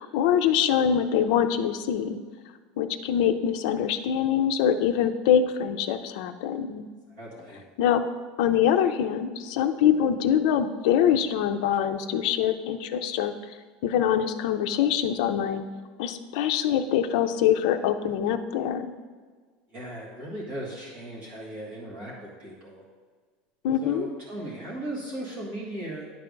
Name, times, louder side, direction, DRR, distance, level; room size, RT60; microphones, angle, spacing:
voice 1, 0.0-2.2 2.8-6.8 7.8-8.0 8.4-13.3 13.8-15.7 16.0-18.9 23.6-24.1, left 9 dB, 60° left, 8 dB, 0.5 m, -24 dB
voice 2, 7.1-7.6 19.7-22.8 23.8-26.2, right 1 dB, 30° right, -5 dB, 1.6 m, -37 dB
10.0 x 3.4 x 5.2 m, 1.5 s
cardioid pair, 180°, 4 cm